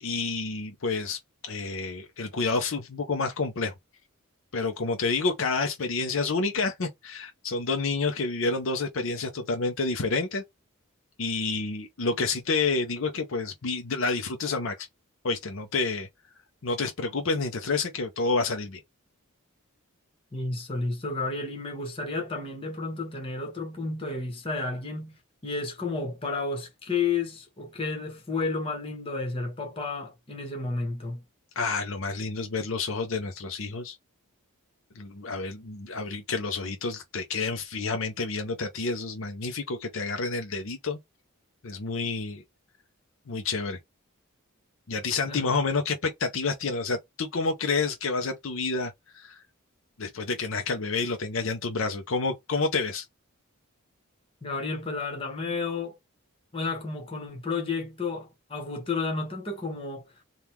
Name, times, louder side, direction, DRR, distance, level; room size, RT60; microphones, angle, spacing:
voice 1, 0.0-3.7 4.5-10.4 11.2-14.9 15.2-16.1 16.6-18.8 31.6-34.0 35.0-41.0 41.6-42.4 43.3-43.8 44.9-49.4 50.0-53.1, left 4 dB, 65° left, 0.6 m, -29 dB
voice 2, 20.3-25.2 25.4-31.2 45.3-45.5 54.4-56.0 56.5-60.0, left 3 dB, 25° left, 1.2 m, -32 dB
3.5 x 2.4 x 4.4 m
head